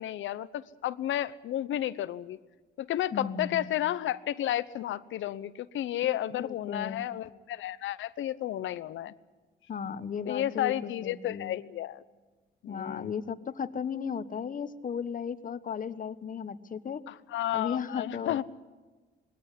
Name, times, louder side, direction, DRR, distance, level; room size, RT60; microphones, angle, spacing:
voice 1, 0.0-2.4 2.8-9.1 10.3-12.0 12.6-13.1 17.1-18.4, left 12 dB, 75° left, 16 dB, 0.9 m, -32 dB
voice 2, 3.1-3.7 6.4-7.1 9.7-11.6 12.7-17.0 17.5-18.4, left 7 dB, 45° left, 13 dB, 1.2 m, -35 dB
20.5 x 17.5 x 9.9 m, 1.3 s
cardioid pair, 90°, 20 cm